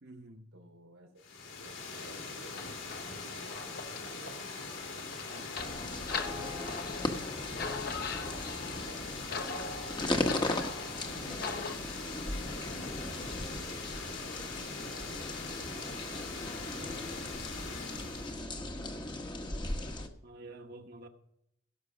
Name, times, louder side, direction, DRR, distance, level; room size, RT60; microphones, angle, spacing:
voice 1, 0.0-0.5 5.3-5.6 20.2-21.1, right 2 dB, 50° right, 1.2 m, -49 dB
voice 2, 0.5-1.2 1.5-4.4 5.1-7.7 8.6-13.1 14.2-15.2 15.8-18.5, right 1 dB, 90° right, 3.6 m, -56 dB
Water, 1.2-18.4, left 4 dB, 75° left, 3.8 m, -42 dB
sound 1, 2.5-11.7, left 4 dB, 50° left, 1.2 m, -41 dB
sound 2, 5.5-20.1, left 1 dB, 25° left, 1.1 m, -38 dB
17.0 x 6.7 x 5.1 m
head